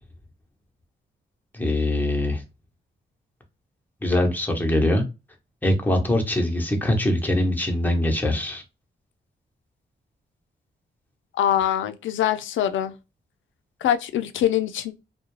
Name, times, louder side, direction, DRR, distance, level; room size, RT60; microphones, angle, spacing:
voice 1, 1.5-2.4 4.0-5.0 5.6-8.6, left 1 dB, 10° left, 1.0 m, -22 dB
voice 2, 11.3-12.9 13.8-14.9, left 10 dB, 75° left, 0.4 m, -23 dB
2.3 x 2.2 x 3.1 m
supercardioid pair, 50°, 20 cm